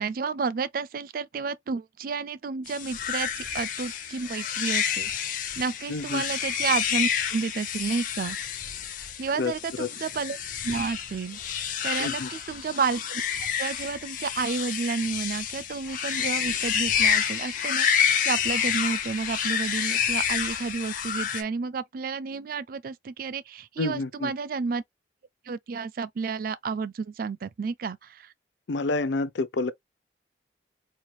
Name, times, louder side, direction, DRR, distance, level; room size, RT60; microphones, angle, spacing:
voice 1, 0.0-5.1 5.6-8.4 9.2-10.4 10.6-11.4 11.8-13.3 13.6-24.8 25.5-28.3, right 5 dB, 50° right, 0.4 m, -31 dB
sound 1, 2.7-21.4, left 8 dB, 45° left, 0.8 m, -29 dB
voice 2, 5.9-6.2 9.4-9.5 9.8-9.9 12.0-12.3 23.8-24.3 28.7-29.7, left 3 dB, 75° left, 0.6 m, -28 dB
4.4 x 3.1 x 2.3 m
head